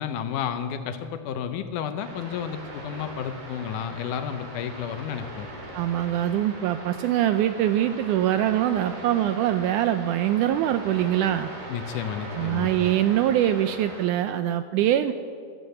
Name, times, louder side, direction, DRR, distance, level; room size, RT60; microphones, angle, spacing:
voice 1, 0.0-5.5 11.7-12.7, left 8 dB, 75° left, 9 dB, 2.1 m, -31 dB
sound 1, 2.0-14.1, right 1 dB, 60° right, 4.3 m, -40 dB
voice 2, 5.7-11.5 12.4-15.1, right 12 dB, 80° right, 11 dB, 1.8 m, -23 dB
13.5 x 12.5 x 7.8 m, 2.2 s
omnidirectional pair, 4.0 m